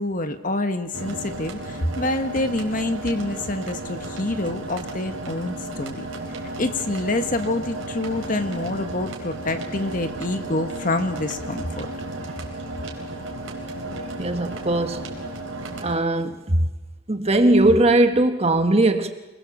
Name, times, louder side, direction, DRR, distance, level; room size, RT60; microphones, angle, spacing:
voice 1, 0.0-6.1 6.6-11.9, left 2 dB, 40° left, 8 dB, 1.5 m, -27 dB
sound 1, 0.9-16.0, right 2 dB, 80° right, 4.3 m, -34 dB
voice 2, 14.2-15.1 15.8-16.7 17.1-19.1, right 1 dB, 30° right, 7 dB, 1.3 m, -19 dB
27.0 x 20.5 x 7.2 m, 1.1 s
head